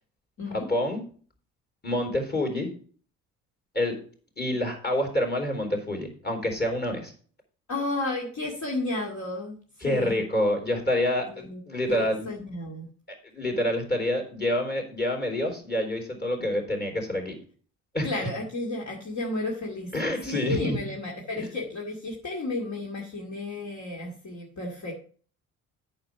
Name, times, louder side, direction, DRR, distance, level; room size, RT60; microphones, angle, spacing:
voice 1, 0.5-1.0 1.8-2.7 3.7-4.0 4.4-7.1 9.8-12.3 13.3-17.3 17.9-18.3 19.9-20.8 21.4-21.5, left 1 dB, 25° left, 2 dB, 3.8 m, -27 dB
voice 2, 7.7-9.6 9.8-10.2 11.3-11.6 11.9-12.9 18.0-19.9 20.3-24.9, left 2 dB, 45° left, -2 dB, 2.3 m, -32 dB
8.8 x 6.6 x 4.7 m, 0.43 s
hypercardioid pair, 50°, 38 cm